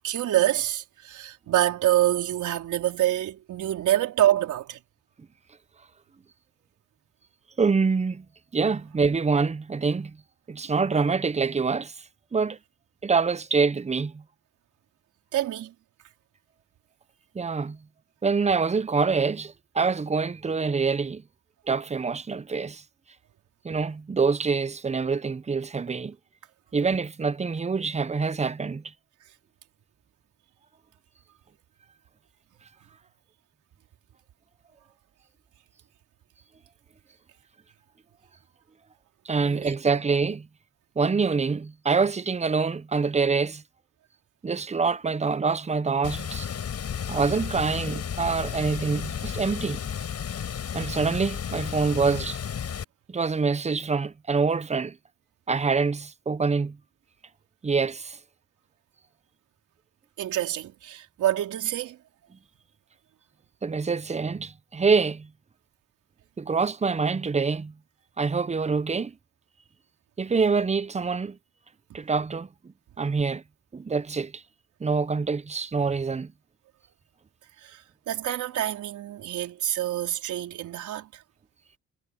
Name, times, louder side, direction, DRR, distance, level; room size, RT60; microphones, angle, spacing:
voice 1, 0.0-4.8 15.3-15.7 39.4-40.2 60.2-62.0 71.9-72.0 77.6-81.2, right 13 dB, 75° right, 4.3 m, -26 dB
voice 2, 7.6-8.2 8.5-10.2 10.5-11.9 12.3-12.6 13.0-14.2 17.3-17.8 18.2-21.2 21.7-22.8 23.6-26.2 26.7-28.8 39.3-40.5 41.0-43.6 44.4-46.5 47.1-49.9 50.7-52.4 53.1-55.0 55.5-56.8 57.6-58.2 63.6-65.3 66.4-67.7 68.2-69.1 70.2-71.4 71.9-73.4 73.7-74.4 74.8-76.3, right 4 dB, 20° right, 0.8 m, -25 dB
Water, 46.0-52.8, left 8 dB, 55° left, 5.4 m, -33 dB
cardioid pair, 90°, 30 cm